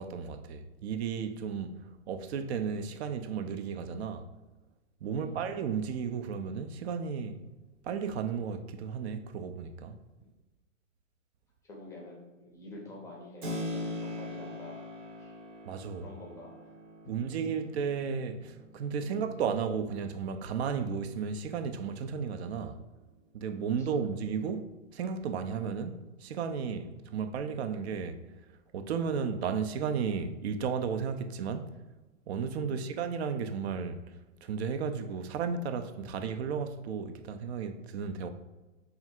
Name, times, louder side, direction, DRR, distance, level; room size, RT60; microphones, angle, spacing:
voice 1, 0.0-1.7 2.1-4.3 5.0-7.4 7.8-10.0 15.7-16.1 17.1-22.8 23.3-28.2 28.7-31.7 32.3-34.0 34.4-38.3, right 6 dB, 55° right, 0.4 m, -34 dB
voice 2, 5.1-5.5 11.6-15.4 16.0-16.7 19.0-19.3 23.8-24.0 32.6-33.0, left 1 dB, 10° left, 0.5 m, -48 dB
Keyboard (musical), 13.4-22.0, left 1 dB, 75° right, 0.9 m, -43 dB
3.4 x 2.4 x 4.3 m
hypercardioid pair, 130°, 38 cm